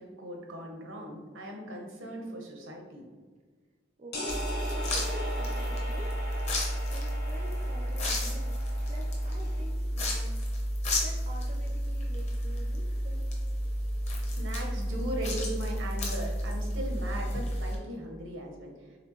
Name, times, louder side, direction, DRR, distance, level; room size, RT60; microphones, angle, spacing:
voice 1, 0.0-3.0 14.3-18.7, right 1 dB, 90° right, 1 dB, 0.9 m, -38 dB
voice 2, 4.0-6.1 6.9-8.6 8.9-10.5 11.0-13.3, equal, 35° right, 0 dB, 0.4 m, -47 dB
sound 1, 4.1-9.7, equal, 55° left, 1.0 m, -40 dB
sound 2, 4.3-17.8, equal, 35° left, 0.7 m, -31 dB
4.2 x 3.3 x 3.0 m, 1.5 s
head